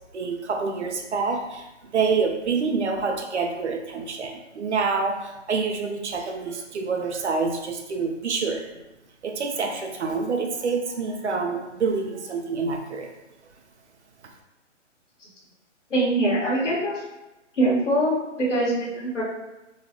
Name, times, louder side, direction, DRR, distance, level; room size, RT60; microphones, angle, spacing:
voice 1, 0.1-1.7 1.9-8.8 9.2-13.1, right 4 dB, 65° right, 3 dB, 0.6 m, -27 dB
voice 2, 15.9-17.0 17.6-19.2, right 1 dB, 75° left, -5 dB, 1.4 m, -23 dB
3.1 x 2.3 x 2.8 m, 1.0 s
hypercardioid pair, 175°, 37 cm